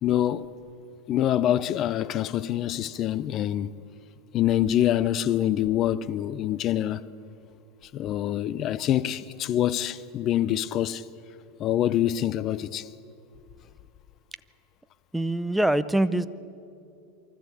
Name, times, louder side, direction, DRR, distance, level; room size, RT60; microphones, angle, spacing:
voice 1, 0.0-0.5 1.1-3.7 4.3-7.1 7.9-11.0 11.6-12.9, left 11 dB, 40° left, 0.5 m, -25 dB
voice 2, 15.1-16.3, right 1 dB, 5° right, 0.6 m, -24 dB
24.0 x 14.0 x 8.4 m
supercardioid pair, 135°, 0 cm